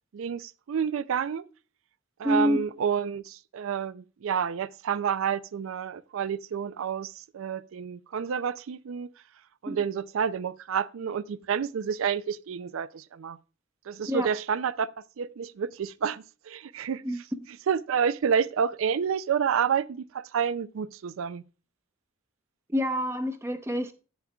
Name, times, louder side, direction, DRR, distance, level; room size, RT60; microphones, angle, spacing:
voice 1, 0.1-1.5 2.2-9.1 9.6-13.4 13.9-14.9 15.2-17.0 17.7-21.4, right 7 dB, 75° right, 0.4 m, -29 dB
voice 2, 2.2-2.6 9.7-9.8 14.1-14.3 17.0-17.2 22.7-23.9, equal, 10° right, 0.6 m, -27 dB
10.0 x 8.5 x 2.3 m
head